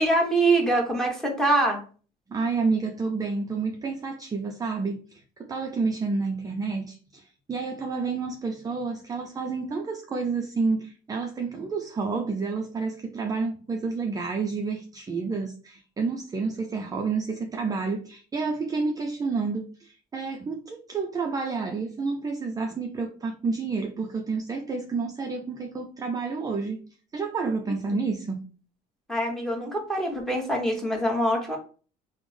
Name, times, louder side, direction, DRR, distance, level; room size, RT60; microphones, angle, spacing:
voice 1, 0.0-1.8 27.9-28.0 29.1-31.6, right 1 dB, 5° left, 1.1 m, -24 dB
voice 2, 2.3-26.8 27.1-28.4, right 4 dB, 20° right, 0.4 m, -29 dB
3.3 x 2.0 x 3.3 m
cardioid pair, 110°, 17 cm